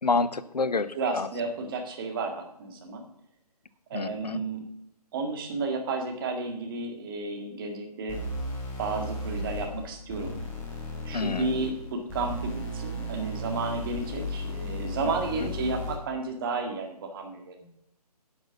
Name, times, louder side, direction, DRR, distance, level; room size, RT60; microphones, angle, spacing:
voice 1, 0.0-1.3 3.9-4.4 11.1-11.6, left 4 dB, 80° left, 15 dB, 0.8 m, -28 dB
voice 2, 1.0-3.0 3.9-4.7 5.1-8.2 8.8-10.4 11.0-17.7, right 3 dB, 35° right, 3 dB, 2.0 m, -32 dB
sound 1, 8.1-16.1, left 1 dB, 10° left, 1.7 m, -35 dB
11.0 x 6.0 x 6.5 m, 0.74 s
figure-of-eight pair, 140°, 20 cm